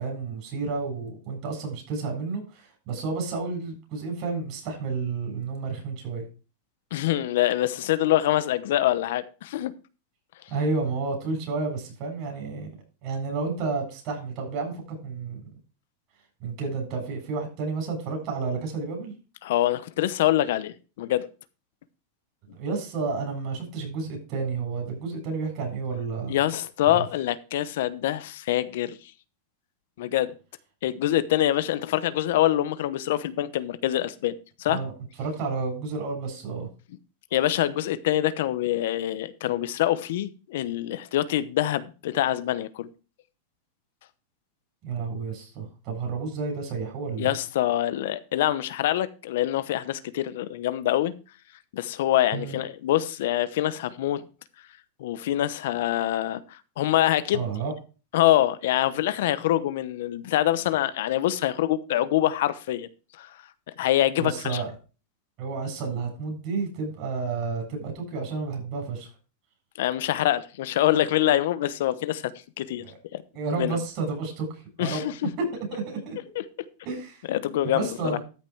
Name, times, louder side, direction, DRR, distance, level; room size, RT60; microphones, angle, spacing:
voice 1, 0.0-6.2 10.5-12.7 13.0-15.5 16.4-19.1 22.5-26.4 26.9-27.0 34.7-34.9 35.2-36.7 44.8-47.3 52.3-52.6 57.3-57.7 64.2-64.7 65.4-69.1 72.8-73.0 73.3-75.0 75.4-76.2 76.8-77.3 77.6-78.2, right 4 dB, 45° right, 7.4 m, -31 dB
voice 2, 6.9-9.7 19.4-21.2 26.3-29.0 30.0-30.3 30.8-34.8 37.3-42.9 47.2-51.1 51.7-54.2 55.0-57.4 58.1-62.9 63.2-63.3 63.8-64.6 69.8-72.3 72.6-72.8 73.1-73.2 73.6-73.8 74.8-75.1 77.3-78.2, left 13 dB, 70° left, 0.9 m, -25 dB
13.5 x 5.9 x 4.6 m
supercardioid pair, 145°, 0 cm